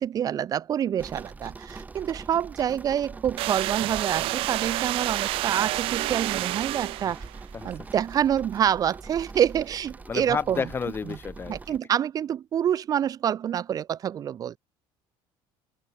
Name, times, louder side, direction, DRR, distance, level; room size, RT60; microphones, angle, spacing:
voice 1, 0.0-7.2 7.6-10.6 11.5-14.6, right 9 dB, 35° right, 1.5 m, -27 dB
sound 1, 1.0-11.8, right 4 dB, 15° right, 2.4 m, -43 dB
sound 2, 3.4-7.4, right 18 dB, 60° right, 0.6 m, -29 dB
voice 2, 7.5-7.9 10.1-11.6, left 5 dB, 20° left, 1.0 m, -31 dB
cardioid pair, 160°, 10 cm